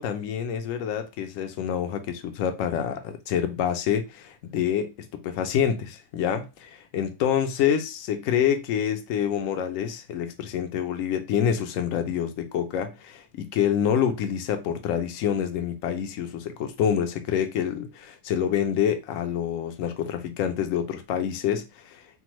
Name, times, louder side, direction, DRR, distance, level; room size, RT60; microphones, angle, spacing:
voice 1, 0.0-22.0, left 9 dB, 75° left, 1.0 m, -27 dB
3.5 x 2.0 x 3.0 m
omnidirectional pair, 1.4 m